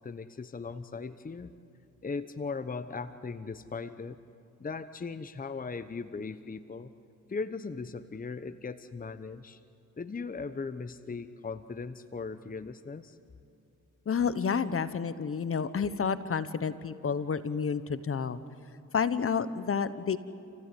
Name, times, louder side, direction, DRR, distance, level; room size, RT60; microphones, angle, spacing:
voice 1, 0.0-1.5 2.0-4.2 4.6-6.9 7.3-9.6 10.0-13.2, left 4 dB, 25° left, 12 dB, 1.0 m, -38 dB
voice 2, 14.1-18.4 18.9-20.2, left 6 dB, 45° left, 14 dB, 1.2 m, -30 dB
28.5 x 16.5 x 9.3 m, 2.8 s
cardioid pair, 65°, 32 cm